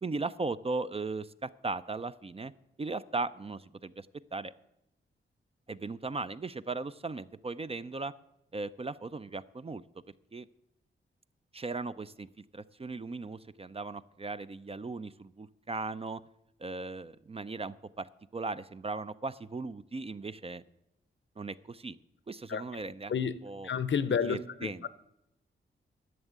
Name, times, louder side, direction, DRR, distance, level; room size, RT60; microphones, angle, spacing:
voice 1, 0.0-2.5 2.8-4.5 5.7-8.1 8.5-9.8 10.3-10.5 11.5-12.3 12.5-16.2 16.6-20.6 21.4-22.0 22.3-23.1 23.4-23.7 24.2-24.9, right 3 dB, 30° right, 0.4 m, -37 dB
voice 2, 23.6-24.9, left 7 dB, 65° left, 0.7 m, -30 dB
11.0 x 7.2 x 8.0 m
cardioid pair, 60°, 21 cm